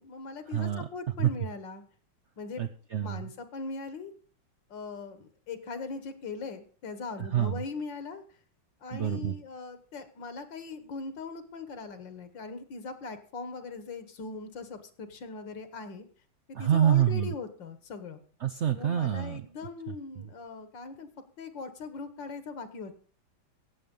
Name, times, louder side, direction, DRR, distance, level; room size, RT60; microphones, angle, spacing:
voice 1, 0.0-1.8 2.4-2.7 3.0-4.1 4.7-8.2 8.8-16.1 16.5-18.2 18.7-21.1 21.4-23.0, left 4 dB, 70° left, 11 dB, 2.0 m, -40 dB
voice 2, 0.5-0.9 1.2-1.3 2.6-3.3 7.2-7.6 8.9-9.3 16.5-17.3 18.4-19.5, right 10 dB, 75° right, 8 dB, 0.6 m, -27 dB
16.5 x 7.5 x 5.4 m, 0.43 s
omnidirectional pair, 2.1 m